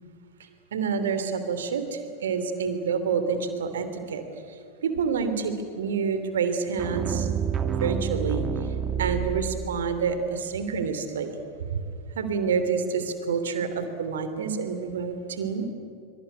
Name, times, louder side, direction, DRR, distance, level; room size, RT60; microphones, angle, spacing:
voice 1, 0.7-4.2 4.8-7.3 7.8-8.5 9.0-11.3 12.1-15.7, right 5 dB, 65° right, 9 dB, 3.1 m, -28 dB
sound 1, 6.8-9.9, right 7 dB, 25° right, 2.1 m, -28 dB
25.5 x 24.0 x 9.6 m, 2.4 s
figure-of-eight pair, 90°, 0 cm